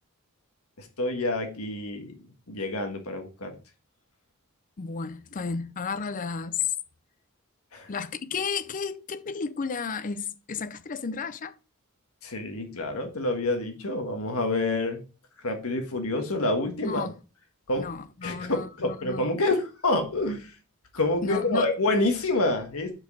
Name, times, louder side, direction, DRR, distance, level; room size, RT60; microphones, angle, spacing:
voice 1, 0.8-2.1 2.5-3.6 7.7-7.9 12.2-15.0 15.4-17.1 17.7-17.9 18.2-20.5 20.9-22.9, left 2 dB, 75° left, 1.5 m, -27 dB
voice 2, 4.8-6.7 7.9-11.5 16.8-17.1 17.7-19.3 21.2-21.7, left 5 dB, 35° left, 0.5 m, -33 dB
6.3 x 5.1 x 4.0 m
head